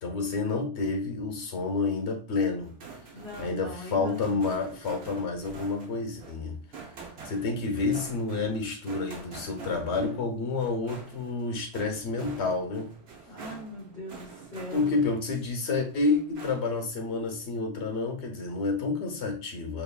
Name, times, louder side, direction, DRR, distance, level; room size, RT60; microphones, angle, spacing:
voice 1, 0.0-2.7 3.4-6.6 7.2-12.9 14.7-19.8, left 3 dB, 85° left, 3 dB, 1.2 m, -29 dB
sound 1, 2.6-15.3 15.7-16.9, right 5 dB, 70° right, 1.1 m, -46 dB
voice 2, 3.1-4.4 13.3-14.9, left 1 dB, 50° left, -11 dB, 2.4 m, -41 dB
4.5 x 3.1 x 2.2 m, 0.40 s
omnidirectional pair, 1.1 m